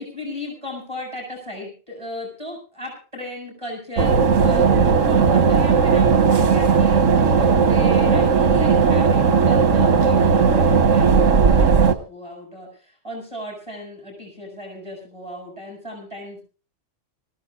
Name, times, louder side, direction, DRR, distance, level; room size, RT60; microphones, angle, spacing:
voice 1, 0.0-16.4, left 1 dB, 25° right, 1 dB, 7.7 m, -35 dB
sound 1, 4.0-11.9, right 5 dB, 75° right, 1.6 m, -16 dB
25.0 x 16.0 x 2.4 m, 0.37 s
omnidirectional pair, 1.3 m